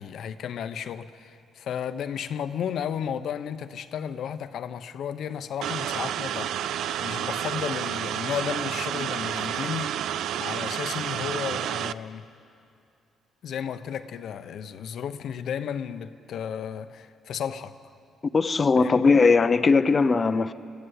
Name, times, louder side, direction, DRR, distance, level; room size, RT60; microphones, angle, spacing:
voice 1, 0.0-6.6 7.0-10.1 10.4-12.3 13.4-17.8 18.8-19.2, left 8 dB, 70° left, 0.8 m, -33 dB
sound 1, 5.6-11.9, right 10 dB, 75° right, 0.4 m, -30 dB
voice 2, 18.3-20.5, left 4 dB, 35° left, 0.7 m, -19 dB
21.5 x 15.0 x 9.9 m
cardioid pair, 90°, 0 cm